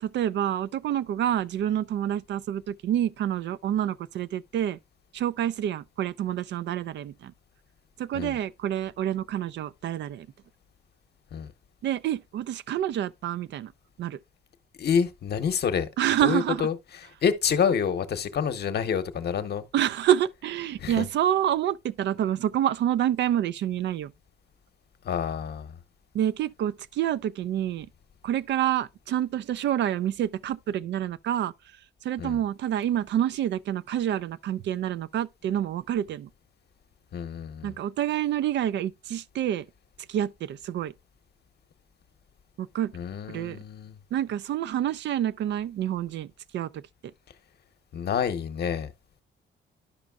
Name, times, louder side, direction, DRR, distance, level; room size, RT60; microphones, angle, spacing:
voice 1, 0.0-4.8 5.1-7.3 8.0-10.3 11.8-13.7 14.0-14.2 16.0-16.6 19.7-24.1 26.1-27.9 28.2-31.5 32.0-36.3 37.6-39.6 40.1-40.9 42.6-42.9 43.3-43.6 44.1-46.3 46.5-46.8, right 11 dB, 65° right, 0.4 m, -27 dB
voice 2, 14.8-15.9 16.2-16.7 17.2-19.6 20.8-21.0 25.0-25.7 32.2-32.4 37.1-37.7 42.9-44.0 47.9-48.9, left 7 dB, 55° left, 0.9 m, -27 dB
12.0 x 5.1 x 2.3 m
cardioid pair, 90°, 20 cm